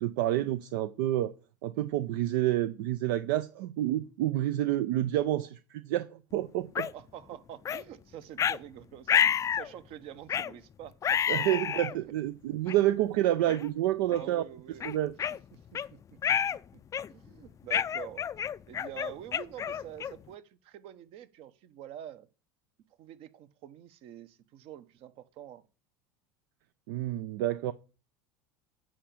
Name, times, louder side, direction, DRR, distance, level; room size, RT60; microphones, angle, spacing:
voice 1, 0.0-1.3 1.6-6.9 11.3-14.4 14.8-15.1 26.9-27.7, right 14 dB, 75° right, 0.6 m, -29 dB
sound 1, 6.8-6.9 7.7-7.8 8.4-8.6 9.1-9.7 10.3-10.5 11.0-11.9 12.7-12.8 13.5-13.7 14.1-14.3 14.8-15.9 16.2-16.6 16.9-17.3 17.7-20.3, left 8 dB, 30° left, 0.4 m, -29 dB
voice 2, 6.8-11.4 11.9-12.0 14.1-14.8 15.5-16.4 16.7-16.8 17.1-18.3 18.7-22.3 23.0-25.6, right 11 dB, 55° right, 1.1 m, -47 dB
8.7 x 5.1 x 7.0 m
hypercardioid pair, 95°, 11 cm